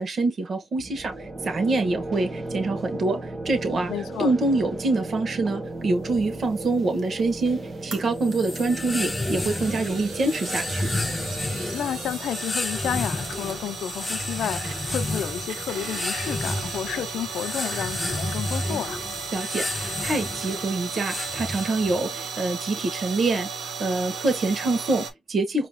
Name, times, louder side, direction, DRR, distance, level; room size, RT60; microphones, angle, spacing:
voice 1, 0.0-3.9 4.2-10.9 19.3-25.7, right 2 dB, 45° right, 1.4 m, -26 dB
sound 1, 0.8-14.5, right 2 dB, 25° right, 1.2 m, -36 dB
voice 2, 3.9-4.3 11.7-19.0, left 10 dB, 75° left, 0.6 m, -31 dB
sound 2, 6.3-25.1, right 5 dB, 70° right, 1.4 m, -36 dB
sound 3, 8.2-22.1, left 2 dB, 15° left, 0.3 m, -31 dB
4.9 x 2.9 x 2.4 m
cardioid pair, 90°, 0 cm